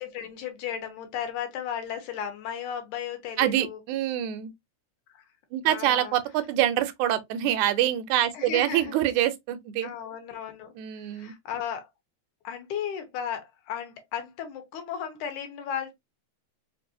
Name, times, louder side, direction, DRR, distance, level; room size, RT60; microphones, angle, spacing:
voice 1, 0.0-3.8 5.1-5.2 5.7-6.2 8.3-8.9 9.8-11.9 12.4-15.9, left 8 dB, 80° left, 2.4 m, -35 dB
voice 2, 3.4-4.5 5.5-9.9 10.8-11.3, right 12 dB, 85° right, 2.0 m, -25 dB
5.1 x 2.6 x 2.7 m
omnidirectional pair, 3.5 m